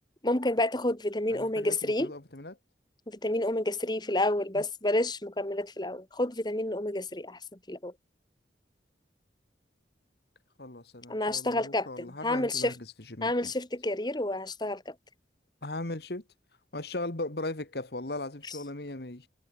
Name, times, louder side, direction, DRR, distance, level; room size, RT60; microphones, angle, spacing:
voice 1, 0.2-2.1 3.1-7.4 7.7-7.9 11.1-12.7 13.2-14.9, left 1 dB, 25° left, 1.7 m, -29 dB
voice 2, 1.3-2.6 4.5-4.6 10.6-13.5 15.6-16.2 16.7-19.3, left 2 dB, 60° left, 1.8 m, -38 dB
head